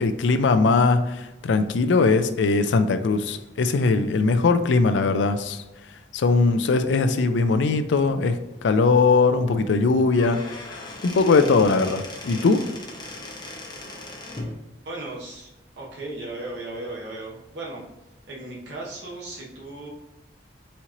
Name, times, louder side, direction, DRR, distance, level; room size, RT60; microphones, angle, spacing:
voice 1, 0.0-5.6 6.1-10.4 11.0-12.6, left 4 dB, 80° left, 10 dB, 0.4 m, -20 dB
Squeak / Wood, 10.0-14.5, left 2 dB, 25° left, 0.7 m, -38 dB
voice 2, 14.8-15.5 15.8-17.8 18.3-19.9, right 2 dB, 70° right, -5 dB, 1.0 m, -36 dB
4.2 x 3.0 x 3.7 m, 1.0 s
head